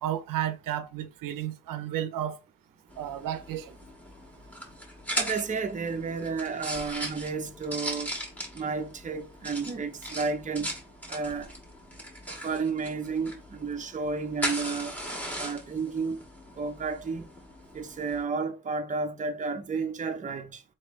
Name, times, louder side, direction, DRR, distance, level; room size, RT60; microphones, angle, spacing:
voice 1, 0.0-2.4 3.0-3.8, right 11 dB, 85° right, 0.5 m, -32 dB
sound 1, 2.9-18.2, right 1 dB, 5° left, 1.4 m, -39 dB
voice 2, 5.2-8.1 8.5-10.7 11.1-11.5 12.4-14.9 15.4-16.2 16.6-17.3 17.7-20.6, right 4 dB, 25° right, 0.5 m, -32 dB
4.3 x 3.2 x 3.0 m
cardioid pair, 125°, 32 cm